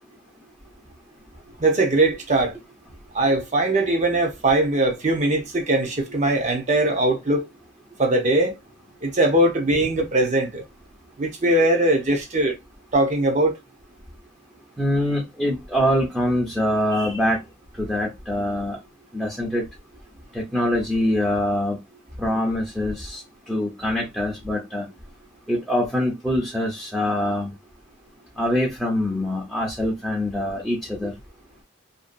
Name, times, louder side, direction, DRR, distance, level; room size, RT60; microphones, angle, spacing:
voice 1, 1.6-2.5 3.1-7.4 8.0-8.5 9.0-10.6 11.2-12.5 12.9-13.6, right 1 dB, 40° right, 0.7 m, -20 dB
voice 2, 14.8-17.4 17.8-18.8 19.1-19.7 20.3-21.8 22.2-24.9 25.5-27.5 28.4-31.1, left 1 dB, ahead, 0.6 m, -24 dB
2.6 x 2.3 x 2.4 m
head